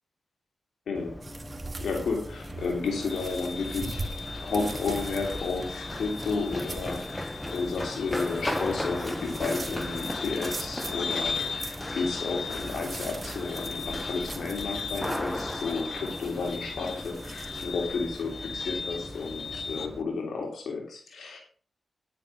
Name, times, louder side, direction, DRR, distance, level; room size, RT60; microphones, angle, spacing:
Run, 0.9-20.0, left 1 dB, 15° left, 1.3 m, -37 dB
sound 1, 1.2-18.2, right 2 dB, 40° right, 1.9 m, -43 dB
voice 1, 1.8-4.1 4.4-21.4, left 4 dB, 85° left, 1 dB, 3.1 m, -32 dB
sound 2, 3.1-19.9, left 5 dB, 70° left, 1.6 m, -39 dB
10.0 x 10.0 x 5.8 m, 0.43 s
cardioid pair, 65°, 0 cm